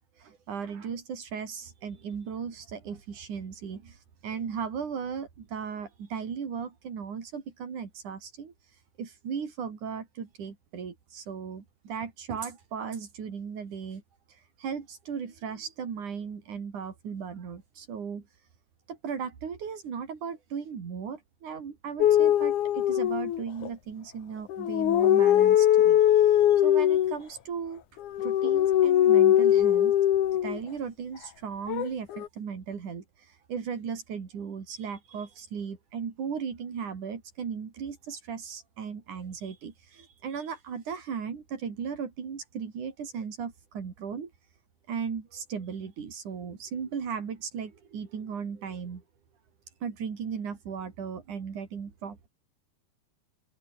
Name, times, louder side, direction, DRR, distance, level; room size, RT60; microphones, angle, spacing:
voice 1, 0.2-8.5 9.0-14.0 14.3-18.2 18.9-27.8 28.2-29.9 30.4-44.3 44.9-49.0 49.8-52.3, right 6 dB, 85° right, 4.8 m, -37 dB
sound 1, 22.0-23.7 24.5-27.2 28.0-30.6 31.7-32.3, left 11 dB, 85° left, 3.0 m, -21 dB
omnidirectional pair, 3.4 m